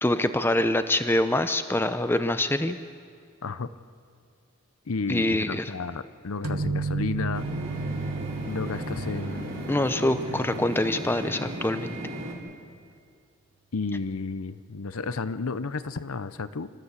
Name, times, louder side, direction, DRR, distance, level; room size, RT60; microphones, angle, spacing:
voice 1, 0.0-2.8 5.1-5.7 9.7-12.0, left 1 dB, 10° left, 10 dB, 0.6 m, -25 dB
voice 2, 4.9-7.5 8.4-10.4 13.7-16.7, left 4 dB, 85° left, 13 dB, 0.7 m, -32 dB
sound 1, 6.4-12.0, right 4 dB, 85° right, 1.0 m, -34 dB
sound 2, 7.3-12.3, equal, 60° right, 4.4 m, -36 dB
26.5 x 13.5 x 8.2 m, 2.2 s
head